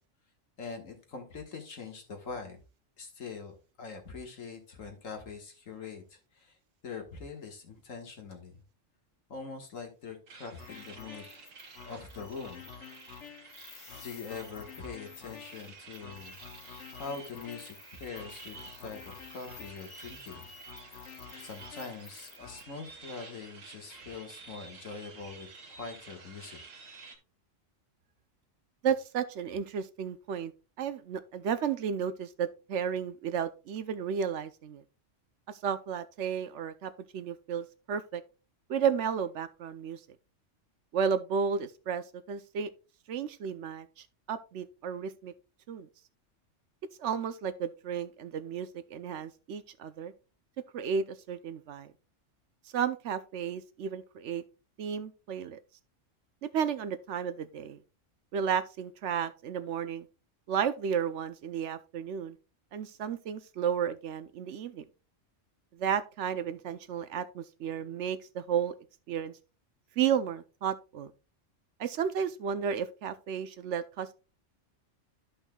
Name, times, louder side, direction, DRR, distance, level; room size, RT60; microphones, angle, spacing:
voice 1, 0.6-2.6 3.0-6.6 6.8-8.6 9.3-11.3 11.8-12.6 13.6-16.4 17.0-20.5 20.9-21.1 21.4-26.6, left 5 dB, 90° left, 1.9 m, -43 dB
sound 1, 10.3-27.2, right 4 dB, 85° right, 1.7 m, -51 dB
sound 2, 10.6-22.6, left 7 dB, 70° left, 1.2 m, -49 dB
voice 2, 28.8-30.5 30.8-34.8 35.5-38.2 38.7-40.0 40.9-42.7 43.1-45.3 45.7-45.9 47.0-50.1 50.7-51.9 52.7-54.4 54.8-55.6 56.4-57.8 58.3-60.1 60.5-62.4 62.7-64.8 65.7-68.7 69.1-69.3 70.0-71.1 71.8-74.1, right 7 dB, 70° right, 0.9 m, -33 dB
12.5 x 5.4 x 2.3 m
omnidirectional pair, 1.3 m